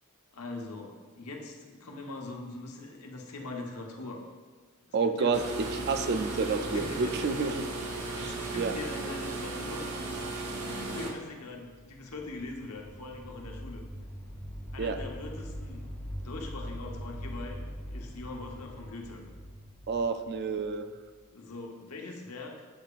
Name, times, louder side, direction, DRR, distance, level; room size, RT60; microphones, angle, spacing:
voice 1, 0.3-4.2 5.0-5.4 6.7-7.3 7.9-9.9 10.6-13.8 14.7-15.9 16.2-17.6 17.9-19.2 21.3-22.7, left 2 dB, 85° left, 0 dB, 1.0 m, -42 dB
voice 2, 4.9-7.6 8.2-8.7 14.8-15.0 19.9-20.9, right 4 dB, 50° right, 8 dB, 0.4 m, -29 dB
sound 1, 5.3-11.1, right 3 dB, 85° right, 1.0 m, -36 dB
sound 2, 11.5-21.3, equal, 15° left, 1.2 m, -42 dB
7.7 x 6.8 x 2.5 m, 1.4 s
head